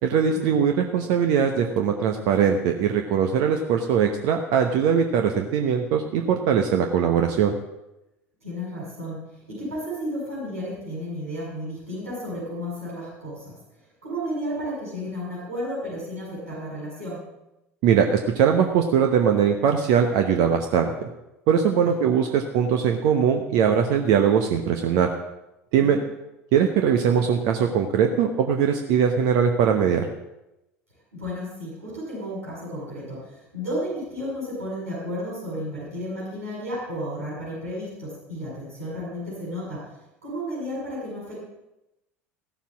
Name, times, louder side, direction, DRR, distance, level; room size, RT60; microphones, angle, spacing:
voice 1, 0.0-7.5 17.8-21.1 21.5-25.1 25.7-26.0 26.5-30.1, right 7 dB, 55° right, 4 dB, 1.0 m, -21 dB
voice 2, 8.4-9.2 9.5-13.6 14.0-17.2 21.8-22.0 25.8-26.0 31.1-39.9 40.2-41.3, equal, 80° right, -7 dB, 6.6 m, -33 dB
15.0 x 7.2 x 7.3 m, 0.93 s
figure-of-eight pair, 70°, 8 cm